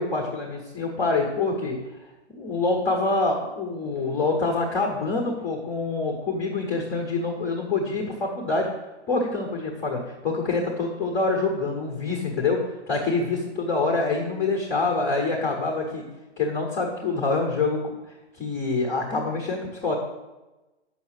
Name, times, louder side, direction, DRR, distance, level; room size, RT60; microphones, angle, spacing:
voice 1, 0.0-1.8 2.3-8.7 9.1-12.6 12.9-16.0 16.4-17.9 18.3-19.9, left 3 dB, 10° left, 1 dB, 0.4 m, -26 dB
6.9 x 5.7 x 6.2 m, 1.1 s
hypercardioid pair, 145°, 34 cm